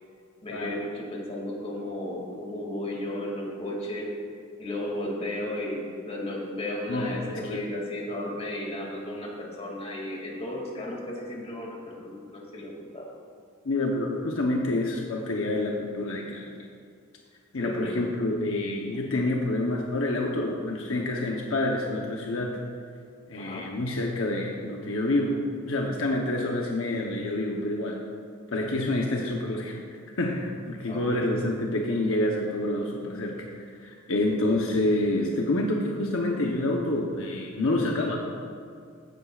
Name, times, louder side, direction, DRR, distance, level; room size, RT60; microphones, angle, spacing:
voice 1, 0.4-4.1 4.6-13.1 17.6-18.0 23.4-23.7 30.9-31.3, left 1 dB, 30° left, -2 dB, 2.3 m, -34 dB
voice 2, 6.9-7.7 13.6-16.5 17.5-22.6 23.3-28.0 28.5-29.8 30.2-38.3, left 1 dB, 70° left, 0 dB, 0.9 m, -28 dB
15.0 x 11.0 x 2.4 m, 2.2 s
head